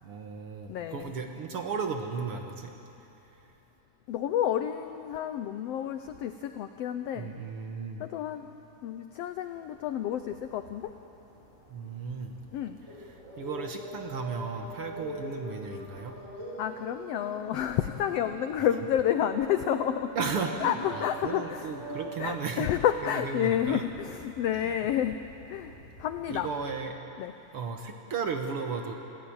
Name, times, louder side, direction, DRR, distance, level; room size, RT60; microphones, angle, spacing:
voice 1, 0.0-2.7 7.1-8.0 11.7-12.3 13.0-13.1 13.4-16.1 20.1-22.7 23.0-23.8 24.5-24.8 26.3-27.0 27.5-28.9, right 5 dB, 55° right, 4 dB, 1.9 m, -35 dB
voice 2, 0.7-1.1 4.1-7.3 8.0-8.5 8.8-10.9 12.5-12.8 16.6-20.1 20.6-25.2 25.5-25.7 26.0-26.5 27.2-27.3, left 10 dB, 80° left, 9 dB, 1.4 m, -30 dB
sound 1, 9.5-26.5, equal, 90° right, 6.7 m, -45 dB
28.0 x 15.5 x 8.8 m, 3.0 s
omnidirectional pair, 3.6 m